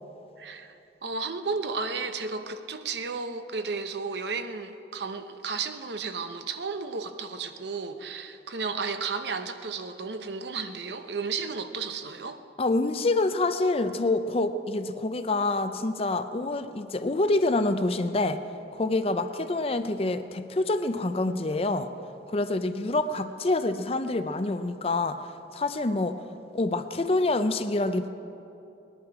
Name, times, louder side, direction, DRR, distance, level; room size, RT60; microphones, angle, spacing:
voice 1, 0.4-12.4, right 4 dB, 75° right, 8 dB, 0.8 m, -33 dB
voice 2, 12.6-18.4 18.7-21.9 22.3-25.2 25.5-26.2 26.5-28.1, left 2 dB, 35° left, 10 dB, 0.5 m, -26 dB
19.5 x 11.0 x 4.8 m, 2.8 s
head